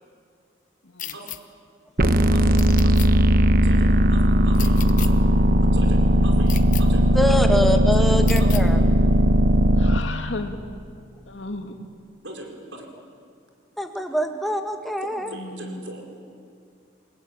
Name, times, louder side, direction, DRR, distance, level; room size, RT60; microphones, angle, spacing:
sound 1, 1.0-1.4 2.6-3.1 4.5-5.1 6.5-6.8 8.3-8.6, left 12 dB, 45° left, 1.1 m, -34 dB
sound 2, 2.0-10.0, right 1 dB, 45° right, 1.1 m, -17 dB
voice 1, 2.3-3.0 3.6-5.2 5.7-7.1 7.9-8.7 12.2-12.9 15.0-16.1, right 2 dB, 70° right, 2 dB, 4.8 m, -40 dB
voice 2, 7.1-8.8 13.8-15.3, equal, ahead, 4 dB, 1.7 m, -24 dB
voice 3, 9.8-10.6 11.3-11.8 15.3-15.9, left 2 dB, 75° left, 5 dB, 2.3 m, -34 dB
29.0 x 19.0 x 8.9 m, 2.3 s
head